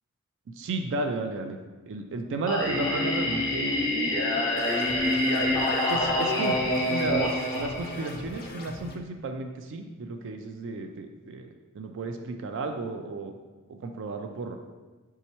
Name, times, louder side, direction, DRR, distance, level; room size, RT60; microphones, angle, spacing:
voice 1, 0.5-1.6 1.9-3.8 5.9-11.5 11.7-13.3 13.7-14.6, right 3 dB, 55° right, 5 dB, 0.3 m, -33 dB
Singing, 2.5-8.4, left 1 dB, 15° left, 0.8 m, -26 dB
sound 1, 4.6-9.0, left 1 dB, 45° left, 0.5 m, -41 dB
4.2 x 3.6 x 2.9 m, 1.2 s
head